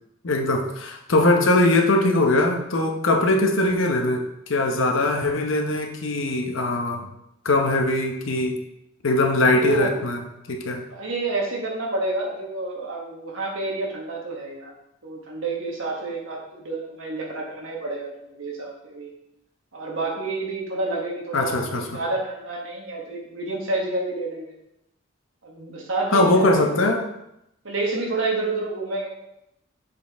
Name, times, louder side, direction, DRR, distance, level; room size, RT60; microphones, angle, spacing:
voice 1, 0.2-7.0 7.4-8.6 9.0-10.2 10.5-10.8 21.3-22.0 26.1-27.0, left 2 dB, 75° left, 3 dB, 0.9 m, -21 dB
voice 2, 9.6-10.0 10.9-14.7 15.0-19.1 19.7-24.5 25.4-27.0 27.6-29.1, right 2 dB, 75° right, -2 dB, 1.3 m, -29 dB
6.9 x 4.4 x 3.5 m, 0.84 s
head